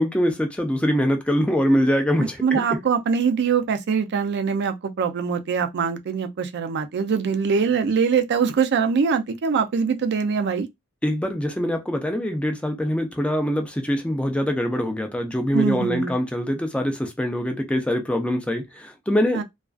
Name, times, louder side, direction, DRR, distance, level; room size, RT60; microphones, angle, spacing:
voice 1, 0.0-2.8 11.0-19.4, equal, 5° left, 0.4 m, -23 dB
voice 2, 2.2-10.7 15.5-16.1 19.3-19.4, right 6 dB, 55° right, 0.4 m, -23 dB
2.4 x 2.3 x 2.3 m
head